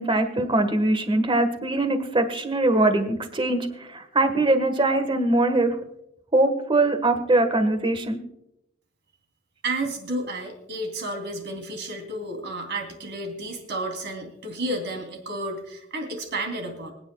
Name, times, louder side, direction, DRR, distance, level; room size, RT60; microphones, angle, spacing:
voice 1, 0.0-5.8 6.3-8.2, right 2 dB, 25° right, 8 dB, 1.4 m, -22 dB
voice 2, 9.6-16.9, right 1 dB, 60° right, 3 dB, 3.1 m, -31 dB
25.0 x 9.7 x 2.3 m, 0.82 s
head